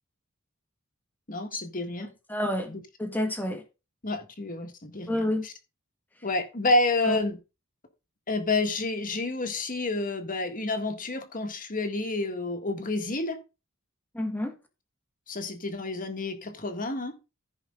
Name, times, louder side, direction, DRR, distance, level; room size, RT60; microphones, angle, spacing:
voice 1, 1.3-2.1 2.7-2.8 4.0-5.5 6.2-7.4 8.3-13.4 15.3-17.1, left 2 dB, 40° left, 1.8 m, -29 dB
voice 2, 2.3-2.7 3.0-3.6 5.1-5.5 7.0-7.2 14.1-14.5, left 1 dB, 10° left, 1.8 m, -29 dB
15.0 x 5.4 x 3.8 m
head